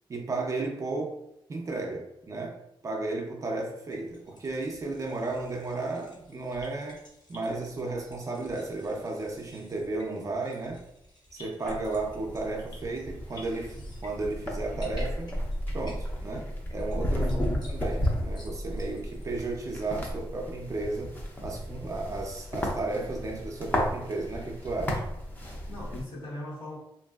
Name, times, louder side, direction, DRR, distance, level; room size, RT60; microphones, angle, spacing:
voice 1, 0.1-1.2 1.5-2.6 2.8-7.0 7.3-10.8 11.3-15.3 15.7-21.1 21.4-25.0, right 2 dB, 40° right, 1 dB, 0.4 m, -34 dB
sound 1, 3.9-19.5, left 1 dB, 50° left, 0.8 m, -53 dB
sound 2, 11.6-26.0, equal, 20° left, 0.5 m, -34 dB
voice 2, 17.2-17.7 25.7-26.8, left 2 dB, 70° left, -6 dB, 1.3 m, -38 dB
2.8 x 2.6 x 2.3 m, 0.85 s
wide cardioid pair, 125°, 9 cm